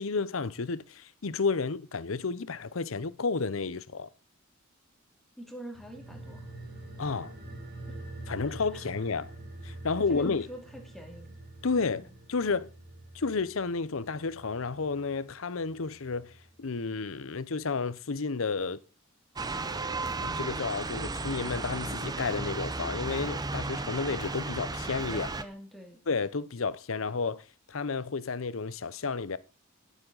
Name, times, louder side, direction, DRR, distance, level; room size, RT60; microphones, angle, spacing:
voice 1, 0.0-4.1 7.0-7.3 8.3-9.3 9.6-10.5 11.6-12.7 13.1-18.8 20.2-25.3 26.1-29.4, left 4 dB, 70° left, 0.7 m, -31 dB
voice 2, 5.4-6.5 8.7-8.9 10.1-11.4 12.0-12.1 25.1-26.0, equal, ahead, 2.4 m, -45 dB
sound 1, 5.7-16.6 16.9-17.0, right 2 dB, 50° right, 6.1 m, -46 dB
sound 2, 19.4-25.5, right 3 dB, 20° right, 0.7 m, -34 dB
18.5 x 7.3 x 4.0 m
head